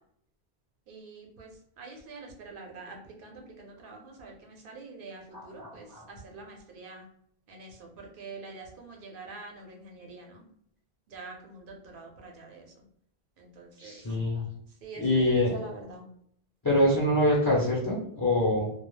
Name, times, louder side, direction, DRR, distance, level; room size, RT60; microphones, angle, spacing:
voice 1, 0.9-1.5 1.8-7.0 7.5-10.4 11.1-12.7 13.4-14.0 14.8-16.0, right 3 dB, 60° right, 1 dB, 0.8 m, -45 dB
voice 2, 5.3-6.0 13.8-14.4 15.0-15.6 16.6-18.7, left 1 dB, 25° left, -5 dB, 0.5 m, -25 dB
2.3 x 2.1 x 3.0 m, 0.68 s
omnidirectional pair, 1.1 m